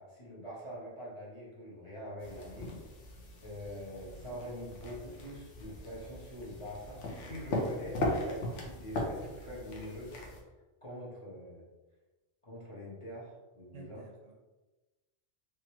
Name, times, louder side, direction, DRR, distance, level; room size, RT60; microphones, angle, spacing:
voice 1, 0.0-3.0 3.4-10.3 10.8-11.6 12.4-14.1, equal, 30° left, -7 dB, 0.7 m, -44 dB
sound 1, 2.2-10.4, left 1 dB, 75° left, 1.0 m, -39 dB
voice 2, 9.2-9.7 13.7-14.3, right 4 dB, 80° right, 0 dB, 1.0 m, -53 dB
3.0 x 2.5 x 2.9 m, 1.1 s
omnidirectional pair, 1.3 m